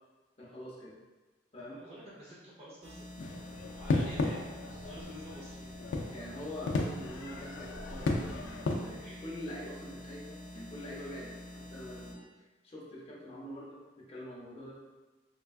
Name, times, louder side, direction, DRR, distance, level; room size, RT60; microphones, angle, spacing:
voice 1, 0.4-1.0 1.5-1.8 6.1-12.3 12.6-15.0, left 1 dB, 30° left, -5 dB, 0.7 m, -45 dB
voice 2, 1.6-5.8 9.0-9.2, equal, 35° right, -8 dB, 0.7 m, -50 dB
sound 1, 2.8-12.1, left 1 dB, 80° right, 0.5 m, -47 dB
sound 2, 3.2-8.8, left 2 dB, 70° left, 0.3 m, -35 dB
3.3 x 2.2 x 2.3 m, 1.2 s
head